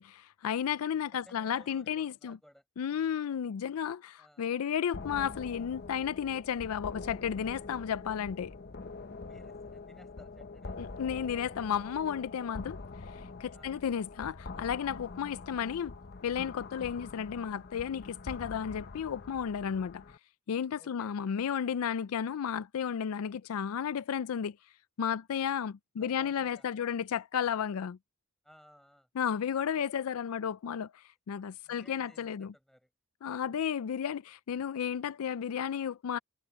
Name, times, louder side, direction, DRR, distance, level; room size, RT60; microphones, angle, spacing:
voice 1, 0.0-2.4 2.8-8.5 10.8-12.8 13.1-15.9 16.2-20.0 20.5-24.6 25.0-28.0 29.2-32.5 33.2-36.2, left 8 dB, 75° left, 0.4 m, -33 dB
voice 2, 0.9-2.6 4.2-4.5 9.1-10.8 13.5-13.8 20.8-21.1 26.0-26.9 28.4-29.1 31.6-32.9, equal, ahead, 7.1 m, -59 dB
sound 1, 4.9-20.2, left 3 dB, 45° left, 0.8 m, -45 dB
head